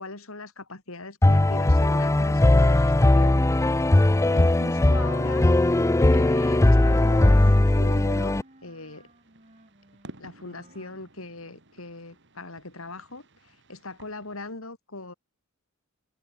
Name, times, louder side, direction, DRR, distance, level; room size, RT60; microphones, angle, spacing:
voice 1, 0.0-3.6 4.0-5.5 6.1-9.1 10.2-15.1, left 2 dB, 70° left, 3.9 m, -40 dB
sound 1, 1.2-8.4, left 1 dB, 15° left, 0.4 m, -19 dB
Wind instrument woodwind instrument, 2.7-11.0, right 2 dB, 35° right, 5.8 m, -54 dB
sound 2, 6.7-14.5, right 1 dB, 60° right, 6.4 m, -53 dB
open air
head